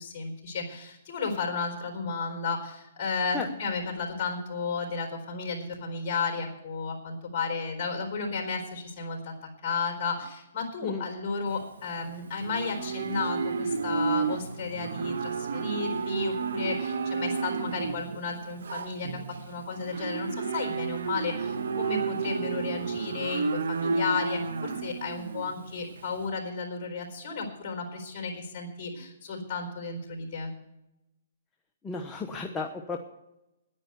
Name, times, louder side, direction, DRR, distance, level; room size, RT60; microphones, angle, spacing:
voice 1, 0.0-30.5, left 4 dB, 40° left, 3 dB, 4.2 m, -33 dB
Livestock farm animals working animals, 11.5-26.2, right 5 dB, 80° right, 1.3 m, -32 dB
voice 2, 31.8-33.0, left 4 dB, 10° left, 1 dB, 1.0 m, -34 dB
10.5 x 9.9 x 8.1 m, 0.91 s
hypercardioid pair, 145°, 0 cm